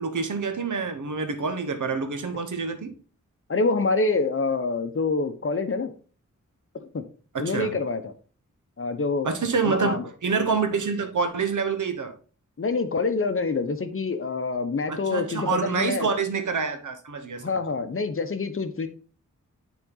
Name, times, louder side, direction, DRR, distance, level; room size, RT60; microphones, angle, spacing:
voice 1, 0.0-3.0 7.3-7.8 9.2-12.1 14.9-17.6, right 5 dB, 80° right, 1.1 m, -27 dB
voice 2, 3.5-5.9 6.8-7.0 7.4-8.1 8.8-9.3 9.6-10.0 12.6-16.1 17.4-18.9, left 3 dB, 45° left, 0.9 m, -26 dB
8.8 x 3.9 x 3.9 m
wide cardioid pair, 85°, 30 cm